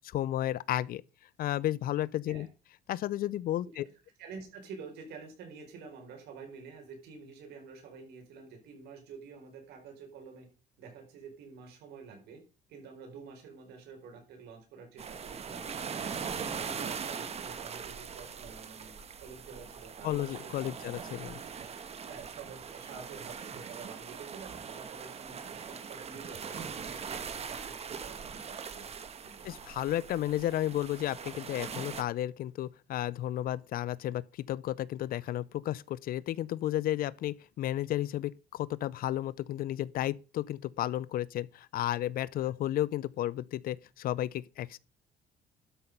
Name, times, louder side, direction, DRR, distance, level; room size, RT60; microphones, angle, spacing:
voice 1, 0.1-1.0 1.4-2.5 2.9-3.8 20.0-21.3 29.4-44.8, left 13 dB, 60° left, 0.5 m, -33 dB
voice 2, 4.2-10.5 10.8-12.4 12.7-15.7 15.9-18.9 19.2-20.7 21.0-21.7 22.0-26.6 26.9-29.6, right 5 dB, 80° right, 4.5 m, -49 dB
sound 1, 15.0-32.0, right 6 dB, 40° right, 1.2 m, -41 dB
12.0 x 5.8 x 5.4 m
cardioid pair, 110°, 17 cm